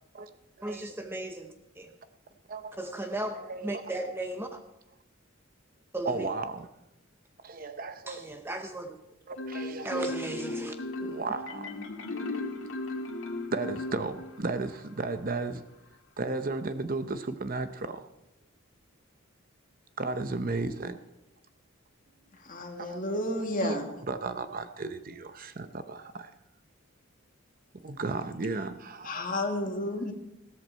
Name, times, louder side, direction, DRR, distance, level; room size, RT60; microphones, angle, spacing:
voice 1, 0.6-1.9 2.8-4.6 5.9-6.5 8.1-9.0 9.8-10.7, right 2 dB, 10° right, 5 dB, 0.8 m, -36 dB
voice 2, 3.4-3.8 6.1-6.7 7.4-8.2 9.3-10.1 11.0-11.7 13.5-15.6 16.2-18.1 20.0-21.0 22.8-26.3 27.8-29.2, right 3 dB, 40° right, 10 dB, 0.7 m, -34 dB
Marimba xylophone, 9.4-14.5, left 2 dB, 70° left, 2.0 m, -36 dB
voice 3, 22.4-23.9 29.0-30.1, left 1 dB, 40° left, 3 dB, 1.8 m, -31 dB
16.0 x 14.0 x 4.4 m, 0.91 s
head